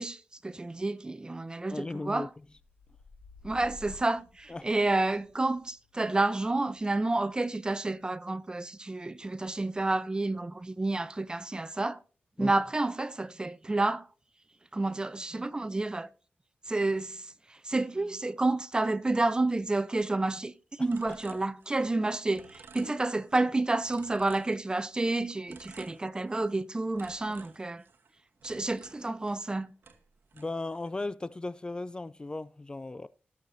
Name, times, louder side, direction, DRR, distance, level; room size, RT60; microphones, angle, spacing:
voice 1, 0.0-2.3 3.4-12.0 12.4-14.1 14.7-16.1 16.7-17.3 17.6-20.5 20.8-27.8 28.4-29.7, right 2 dB, 20° right, 0.6 m, -30 dB
voice 2, 1.7-2.3 4.5-4.7 12.4-12.5 21.0-21.2 22.8-22.9 30.3-33.1, left 2 dB, 25° left, 0.3 m, -37 dB
sound 1, 2.3-10.2 10.7-11.2, left 3 dB, 60° left, 4.8 m, -55 dB
sound 2, 20.9-22.0 22.3-23.5 23.8-25.0 25.5-26.6 27.0-29.6 29.8-31.0, right 5 dB, 65° right, 1.2 m, -54 dB
18.5 x 6.5 x 2.7 m
cardioid pair, 85°, 4 cm